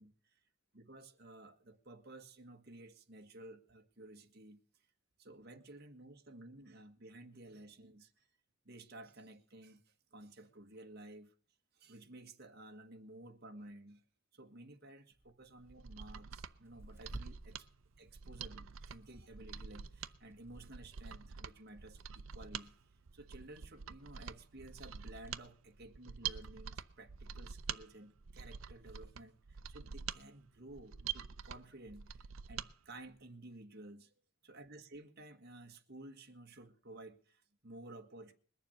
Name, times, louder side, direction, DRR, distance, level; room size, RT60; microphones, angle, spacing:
voice 1, 0.0-0.4 0.7-4.6 5.2-8.3 8.6-11.3 11.7-14.0 14.3-17.7 18.0-22.8 23.1-32.2 32.5-34.1 34.4-38.3, right 2 dB, 50° right, 1.5 m, -54 dB
Tearing, 15.1-27.7, right 1 dB, 10° right, 0.9 m, -59 dB
Mechanisms, 15.6-32.7 33.0-33.1, right 8 dB, 80° right, 0.6 m, -46 dB
21.0 x 7.2 x 6.5 m
head